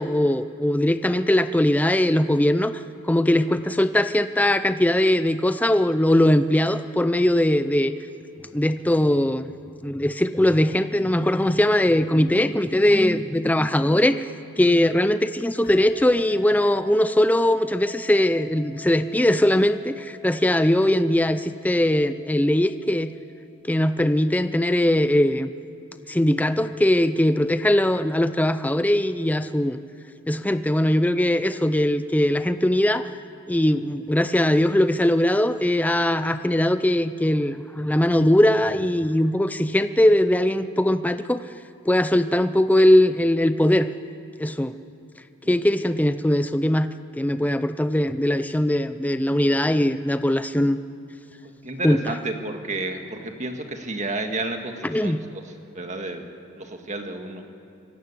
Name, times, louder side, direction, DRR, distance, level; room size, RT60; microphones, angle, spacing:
voice 1, 0.0-2.8 3.1-7.9 8.5-9.5 9.8-14.3 14.6-23.1 23.6-25.5 26.1-29.8 30.3-33.1 33.5-41.4 41.9-43.9 44.4-44.7 45.5-50.8 51.8-52.0 54.9-55.2, left 1 dB, 5° left, 11 dB, 0.4 m, -20 dB
sound 1, 15.6-23.8, left 6 dB, 45° left, 5.8 m, -48 dB
voice 2, 51.4-56.3 56.5-57.5, right 2 dB, 35° right, 5 dB, 1.8 m, -31 dB
25.5 x 17.0 x 8.4 m, 2.8 s
head